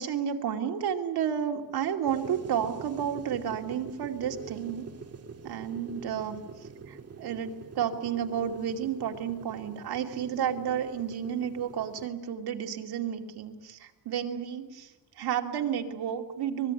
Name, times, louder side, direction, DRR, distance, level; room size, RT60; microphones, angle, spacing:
voice 1, 0.0-4.9 5.4-16.7, right 8 dB, 85° right, 3 dB, 2.7 m, -32 dB
sound 1, 2.0-12.1, right 5 dB, 40° right, 2.2 m, -45 dB
24.5 x 21.5 x 9.9 m, 1.1 s
wide cardioid pair, 150°, 37 cm